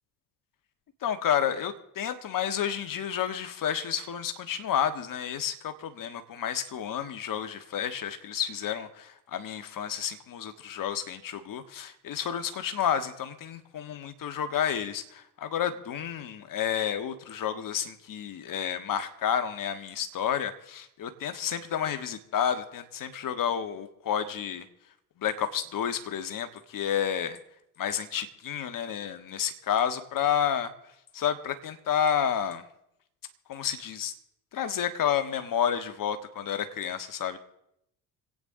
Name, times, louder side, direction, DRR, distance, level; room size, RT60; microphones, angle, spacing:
voice 1, 1.0-24.6 25.2-27.4 27.8-30.7 31.1-32.6 33.5-34.1 34.5-37.4, left 8 dB, 45° left, 9 dB, 1.6 m, -30 dB
26.0 x 9.0 x 3.8 m, 0.79 s
hypercardioid pair, 60°, 44 cm